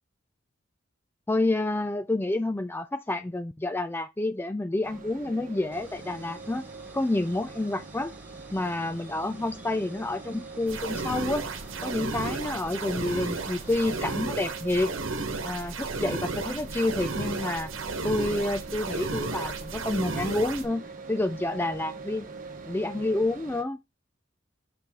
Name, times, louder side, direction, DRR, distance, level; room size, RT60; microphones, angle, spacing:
voice 1, 1.3-6.7 6.9-8.1 8.5-11.5 11.8-14.9 15.4-17.7 18.0-20.8 21.1-22.3 22.7-23.8, left 2 dB, 10° left, 0.4 m, -29 dB
sound 1, 4.8-23.6, right 3 dB, 45° right, 1.1 m, -44 dB
sound 2, 5.7-14.0, right 1 dB, 10° right, 1.5 m, -51 dB
sound 3, 10.7-20.7, right 3 dB, 75° right, 1.2 m, -33 dB
6.8 x 4.6 x 3.6 m
head